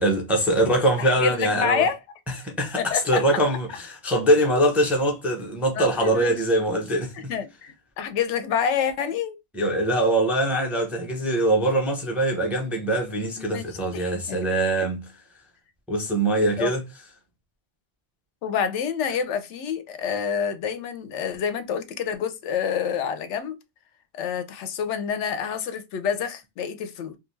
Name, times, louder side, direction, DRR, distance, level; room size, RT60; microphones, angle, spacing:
voice 1, 0.0-1.9 2.3-7.3 9.5-15.0 15.9-16.8, right 1 dB, ahead, 0.4 m, -23 dB
voice 2, 1.0-2.0 2.8-3.2 5.8-6.3 7.1-9.4 13.4-13.6 13.9-14.4 16.6-16.7 18.4-23.6 24.1-27.2, left 7 dB, 90° left, 0.9 m, -27 dB
2.6 x 2.3 x 3.1 m
omnidirectional pair, 1.2 m